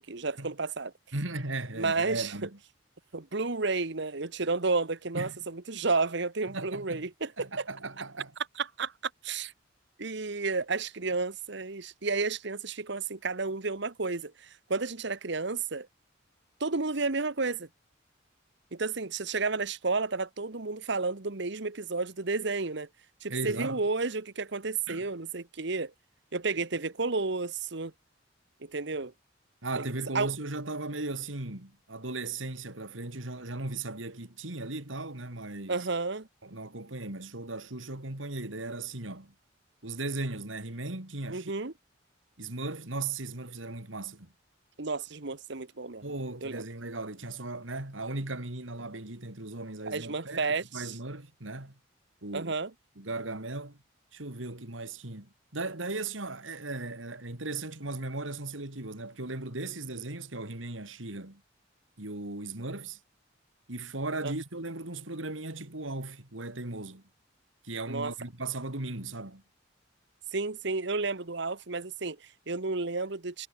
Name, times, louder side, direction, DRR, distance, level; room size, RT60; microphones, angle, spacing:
voice 1, 0.0-0.9 1.7-2.3 3.1-7.7 8.6-8.9 9.2-9.5 10.0-15.9 16.6-17.7 18.7-22.9 23.2-25.9 26.3-27.9 28.6-29.1 29.8-29.9 30.1-30.3 35.7-36.3 41.3-41.7 44.8-46.0 46.4-46.6 49.9-51.0 52.3-52.7 64.2-64.3 67.9-68.1 70.3-73.5, right 3 dB, 65° right, 1.3 m, -31 dB
voice 2, 1.1-2.5 5.1-5.4 6.5-7.1 7.4-8.3 23.3-23.8 24.9-25.1 29.6-35.9 36.4-39.3 39.8-41.6 42.4-44.3 46.0-50.5 50.7-51.8 52.2-52.5 53.0-53.8 54.1-61.4 62.0-63.0 63.7-67.0 67.6-69.4, right 2 dB, 85° right, 3.3 m, -37 dB
head